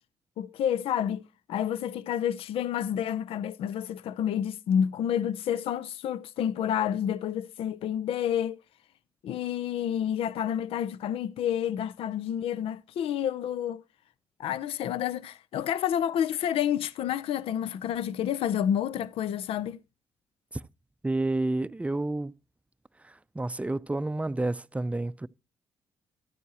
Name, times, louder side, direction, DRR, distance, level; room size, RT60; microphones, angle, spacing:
voice 1, 0.4-1.2 1.5-8.6 9.2-13.8 14.4-19.8, left 9 dB, 80° left, 0.5 m, -29 dB
voice 2, 21.0-22.3 23.0-25.3, right 2 dB, 15° right, 0.5 m, -30 dB
13.0 x 9.3 x 2.8 m
supercardioid pair, 60°, 10 cm